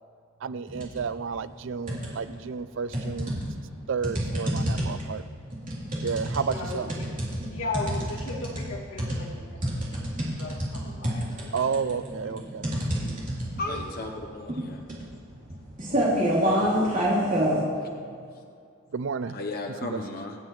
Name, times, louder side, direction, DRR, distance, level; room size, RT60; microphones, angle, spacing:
voice 1, 0.4-3.3 3.9-5.2 6.0-6.9 11.5-12.7 17.9-18.0 18.9-19.4 19.8-20.0, right 5 dB, 60° right, 14 dB, 0.4 m, -31 dB
sound 1, 0.7-1.1 1.4-2.4 2.9-17.6, equal, 40° right, 3.2 m, -28 dB
voice 2, 4.6-5.0 6.5-7.1 7.5-10.1 10.4-11.2 11.5-11.6 12.2-12.5 12.7-13.4 16.7-17.4, left 3 dB, 75° left, -3 dB, 2.5 m, -38 dB
voice 3, 13.6-14.8 15.9-16.2 19.3-20.4, left 2 dB, 45° left, 2 dB, 0.9 m, -35 dB
26.5 x 9.0 x 3.2 m, 2.3 s
head